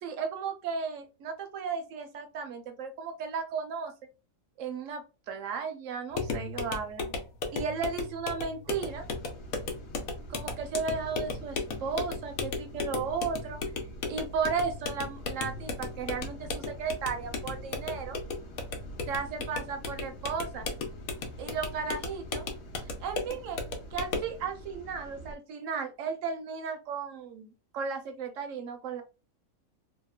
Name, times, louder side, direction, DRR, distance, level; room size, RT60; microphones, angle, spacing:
voice 1, 0.0-3.9 4.6-7.1 7.5-9.1 10.3-13.6 14.0-18.2 19.1-20.7 21.4-22.5 22.8-23.6 23.9-29.0, right 5 dB, 70° right, 6 dB, 0.9 m, -35 dB
sound 1, 6.1-24.4, left 3 dB, 90° left, 1.1 m, -36 dB
sound 2, 8.8-25.4, right 1 dB, 60° left, 0.8 m, -46 dB
2.8 x 2.1 x 2.2 m, 0.30 s
omnidirectional pair, 1.5 m